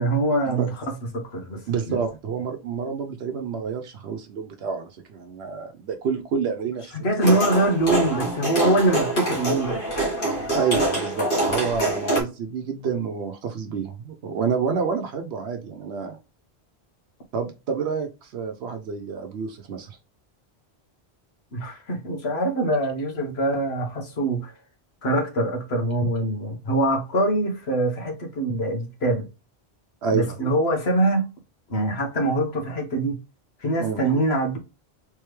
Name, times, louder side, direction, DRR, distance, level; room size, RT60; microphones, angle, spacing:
voice 1, 0.0-1.6 1.9-2.0 7.0-9.8 21.5-24.5 25.0-29.3 30.1-31.3 31.7-33.2 33.6-34.6, right 1 dB, 75° left, 1.4 m, -23 dB
voice 2, 1.7-7.0 7.2-7.3 10.5-16.2 17.3-20.0 30.0-30.3 33.8-34.0, right 6 dB, 80° right, 0.9 m, -28 dB
sound 1, 7.2-12.2, right 1 dB, 55° left, 1.8 m, -25 dB
3.5 x 3.4 x 3.0 m
omnidirectional pair, 1.1 m